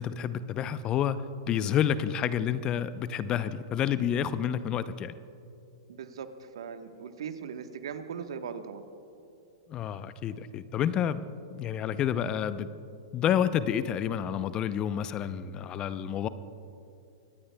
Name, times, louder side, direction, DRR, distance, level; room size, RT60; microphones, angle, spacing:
voice 1, 0.0-5.1 9.7-11.2 11.5-12.7 13.1-16.3, left 9 dB, 30° left, 14 dB, 0.6 m, -29 dB
voice 2, 5.9-8.8, right 7 dB, 75° right, 7 dB, 1.2 m, -39 dB
25.0 x 19.0 x 2.3 m, 2.7 s
hypercardioid pair, 115°, 3 cm